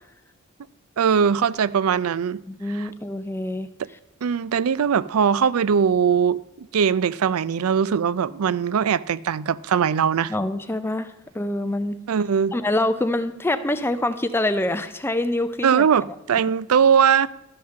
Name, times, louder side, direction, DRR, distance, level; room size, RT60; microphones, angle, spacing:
voice 1, 1.0-2.4 2.7-2.9 4.2-10.3 12.1-12.5 15.6-17.3, right 7 dB, 90° right, 0.4 m, -20 dB
voice 2, 2.5-3.7 10.3-12.0 12.5-15.9, left 1 dB, 10° left, 0.4 m, -25 dB
13.0 x 5.8 x 6.3 m
head